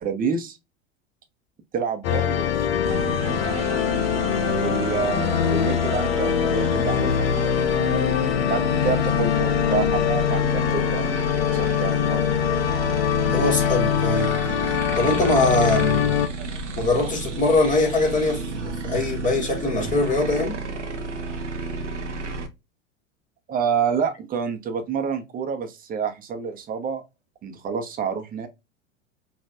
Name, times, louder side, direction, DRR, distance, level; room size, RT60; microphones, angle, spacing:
voice 1, 0.0-0.6 1.7-2.5 4.0-12.4 23.5-27.0 27.4-28.5, right 6 dB, 25° right, 1.0 m, -28 dB
sound 1, 2.0-16.3, left 9 dB, 55° left, 0.7 m, -23 dB
sound 2, 2.8-22.5, right 3 dB, 75° right, 0.8 m, -32 dB
voice 2, 13.3-14.6 15.0-16.3 16.8-20.6, left 2 dB, 20° left, 1.7 m, -22 dB
5.2 x 2.5 x 2.4 m
figure-of-eight pair, 85°, 36 cm